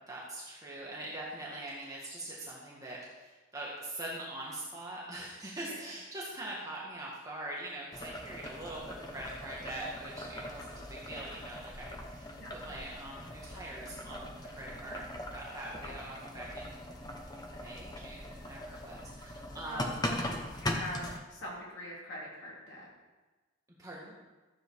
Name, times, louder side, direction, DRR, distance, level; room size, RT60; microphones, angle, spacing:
voice 1, 0.1-14.3 14.6-16.7 17.6-20.2 23.8-24.1, right 1 dB, 15° right, -5 dB, 1.7 m, -43 dB
Boiling, 7.9-21.2, left 1 dB, 20° left, 1.2 m, -41 dB
voice 2, 12.3-12.8 15.8-16.0 19.7-20.2 20.6-22.9, left 1 dB, 60° left, -5 dB, 3.6 m, -44 dB
13.5 x 8.0 x 4.7 m, 1.2 s
head